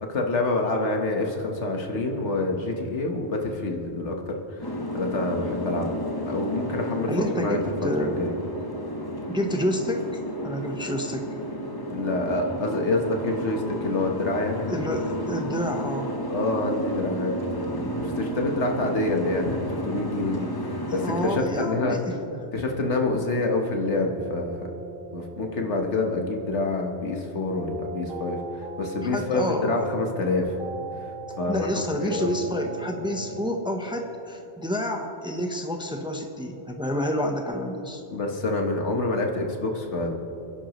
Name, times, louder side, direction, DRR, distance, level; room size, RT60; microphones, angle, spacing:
voice 1, 0.0-5.9 6.2-7.1 7.4-7.6 8.0-8.3 11.9-14.8 16.3-22.0 22.5-24.7 25.1-30.5 31.0-31.7 31.9-32.3 38.1-40.2, left 2 dB, 85° left, 2 dB, 1.7 m, -27 dB
Boat Water vehicle, 4.6-21.3, equal, 20° left, 1.0 m, -32 dB
voice 2, 7.1-8.3 9.3-11.3 14.7-16.1 20.9-22.5 29.0-29.8 31.5-38.0, equal, 5° right, 3 dB, 0.9 m, -29 dB
sound 1, 24.1-33.6, right 3 dB, 55° right, 1.4 m, -40 dB
29.5 x 10.5 x 3.1 m, 3.0 s
omnidirectional pair, 1.2 m